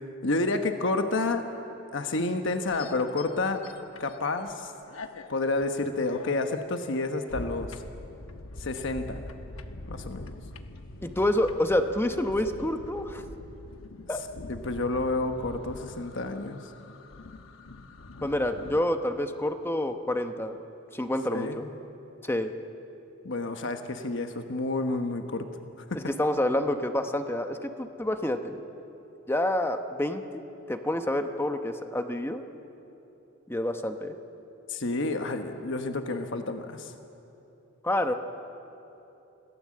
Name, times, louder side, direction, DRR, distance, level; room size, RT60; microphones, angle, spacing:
voice 1, 0.2-1.5 1.9-3.6 4.0-4.7 5.3-7.7 8.6-9.2 9.9-10.3 14.5-16.6 21.3-21.7 23.2-25.5 25.9-26.1 34.7-36.9, left 2 dB, 65° left, 6 dB, 1.1 m, -29 dB
sound 1, 2.5-4.5 4.9-18.8, left 2 dB, 90° left, 1.1 m, -44 dB
voice 2, 11.0-13.2 14.1-14.2 18.2-20.6 20.9-21.7 22.2-22.5 25.9-28.6 29.3-32.4 33.5-34.1 37.8-38.1, left 1 dB, 10° left, 7 dB, 0.9 m, -28 dB
26.0 x 17.5 x 7.6 m, 3.0 s
head